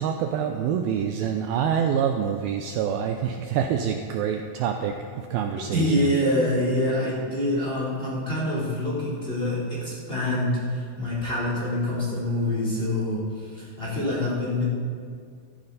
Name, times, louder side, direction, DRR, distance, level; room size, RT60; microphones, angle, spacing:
voice 1, 0.0-6.1, right 8 dB, 90° right, 5 dB, 2.1 m, -26 dB
voice 2, 5.7-14.6, left 1 dB, 15° left, -6 dB, 3.2 m, -26 dB
15.0 x 15.0 x 4.1 m, 2.1 s
omnidirectional pair, 5.0 m